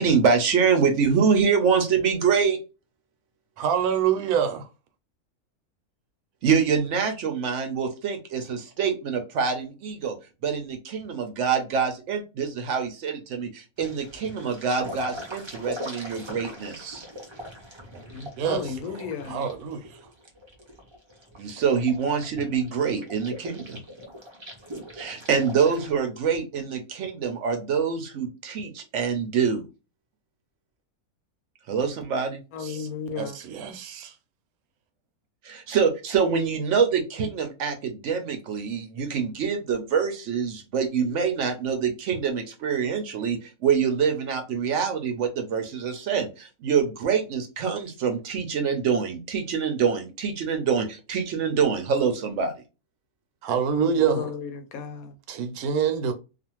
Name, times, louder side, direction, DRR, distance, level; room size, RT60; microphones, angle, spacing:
voice 1, 0.0-2.6 6.4-10.2 10.4-17.1 21.4-23.8 24.9-29.6 31.7-32.4 35.4-52.5, right 6 dB, 65° right, 0.8 m, -25 dB
voice 2, 3.6-4.6 18.4-18.6 19.3-20.0 32.6-32.9 33.2-34.1 53.4-54.3 55.3-56.1, right 7 dB, 85° right, 1.1 m, -26 dB
sound 1, 13.8-25.9, equal, 40° right, 0.4 m, -41 dB
voice 3, 18.1-19.5 32.5-33.4 53.7-55.2, left 6 dB, 75° left, 1.0 m, -34 dB
2.5 x 2.4 x 2.9 m
omnidirectional pair, 1.5 m